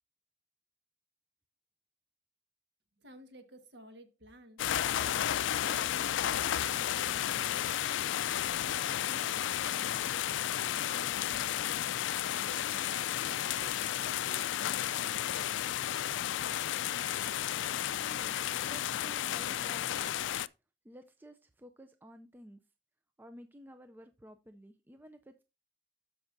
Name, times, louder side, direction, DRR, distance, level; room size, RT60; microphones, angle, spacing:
voice 1, 3.0-4.6 4.9-8.1 8.6-11.6 12.1-12.8 13.3-15.2, right 1 dB, 65° right, 1.5 m, -55 dB
sound 1, 4.6-20.5, left 11 dB, 80° left, 0.3 m, -32 dB
voice 2, 18.0-20.3 20.8-22.6 23.2-25.4, equal, 10° right, 0.4 m, -53 dB
12.5 x 5.4 x 2.6 m
head